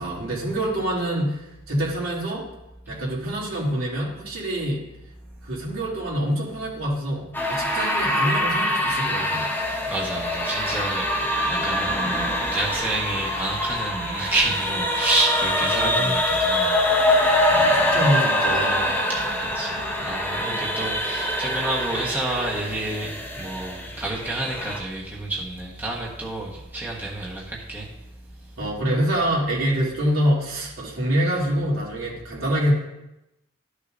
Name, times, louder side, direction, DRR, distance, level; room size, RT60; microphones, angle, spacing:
voice 1, 0.0-2.4 2.9-4.8 5.4-9.5 15.7-16.2 17.5-18.9 28.6-32.7, equal, 75° right, -5 dB, 2.9 m, -26 dB
sound 1, 7.3-24.8, left 1 dB, 10° left, 1.4 m, -24 dB
voice 2, 9.9-16.8 17.5-18.0 19.1-27.9, right 2 dB, 10° right, -5 dB, 1.3 m, -29 dB
13.0 x 6.4 x 2.7 m, 0.91 s
head